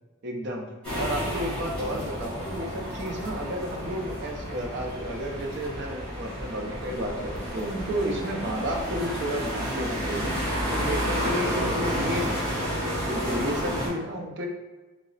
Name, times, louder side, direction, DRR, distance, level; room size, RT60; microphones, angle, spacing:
voice 1, 0.2-0.7 1.0-10.3 10.7-12.5 13.0-14.5, right 1 dB, 50° right, 1 dB, 0.5 m, -32 dB
sound 1, 0.8-13.9, equal, 5° left, 1.5 m, -31 dB
3.8 x 2.0 x 3.9 m, 1.2 s
head